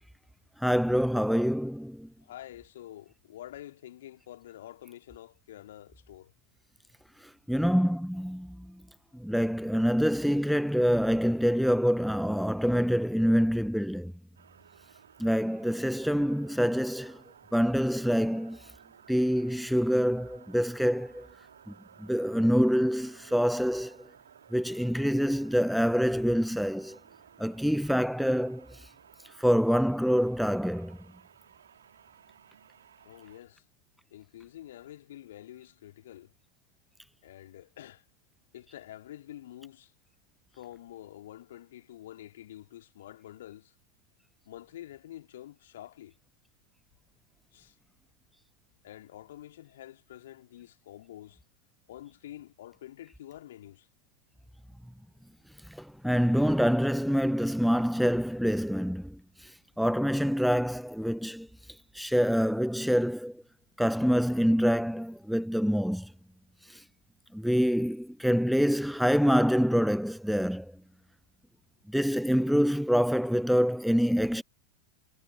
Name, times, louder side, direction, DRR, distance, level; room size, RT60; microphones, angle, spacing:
voice 1, 0.6-2.1 7.5-8.7 9.2-14.1 15.2-17.2 17.5-18.6 19.1-21.3 22.0-24.0 24.5-27.0 27.4-28.7 29.4-31.0 55.8-59.5 59.8-61.5 61.9-63.3 63.8-66.1 66.7-66.8 67.3-70.7 71.9-74.4, equal, ahead, 0.5 m, -26 dB
voice 2, 2.2-6.3 33.0-33.6 34.1-36.3 37.2-38.0 38.5-39.9 40.5-43.7 44.5-46.1 47.5-47.7 48.8-51.4 51.9-53.9, left 13 dB, 60° left, 2.5 m, -47 dB
sound 1, 14.4-33.4, right 8 dB, 65° right, 2.7 m, -56 dB
figure-of-eight pair, 90°, 0 cm